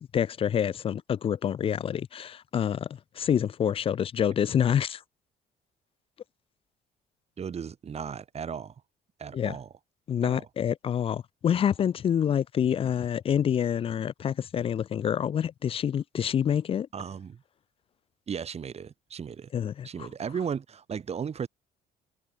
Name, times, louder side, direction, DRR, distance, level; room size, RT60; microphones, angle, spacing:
voice 1, 0.0-2.9 3.2-5.0 9.3-9.5 10.1-16.9 19.5-20.1, left 9 dB, 35° left, 0.4 m, -27 dB
voice 2, 7.4-8.8 9.2-9.7 10.2-10.5 16.9-17.4 18.3-19.5 19.8-21.5, right 7 dB, 40° right, 3.5 m, -35 dB
cardioid pair, 110°, 17 cm